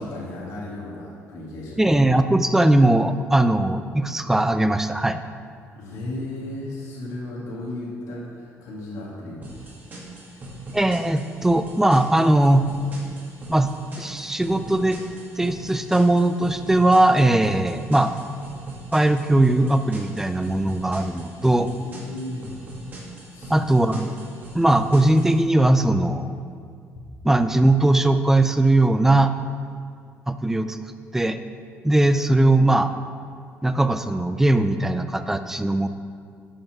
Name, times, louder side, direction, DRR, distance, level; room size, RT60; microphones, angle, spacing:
voice 1, 0.0-1.9 5.8-9.5 10.3-10.4 21.5-22.5 23.3-23.6 27.0-27.1, left 1 dB, 75° left, -5 dB, 1.8 m, -35 dB
voice 2, 1.8-5.2 10.7-12.7 13.5-15.0 15.4-18.1 18.9-21.7 23.5-24.1 24.5-26.3 27.2-29.3 30.3-30.8 31.1-31.4 31.8-32.9 33.6-35.9, right 1 dB, 5° right, 10 dB, 0.4 m, -19 dB
sound 1, 9.4-25.4, right 2 dB, 35° right, 2.2 m, -40 dB
7.4 x 5.6 x 6.0 m, 2.2 s
cardioid pair, 100°, 5 cm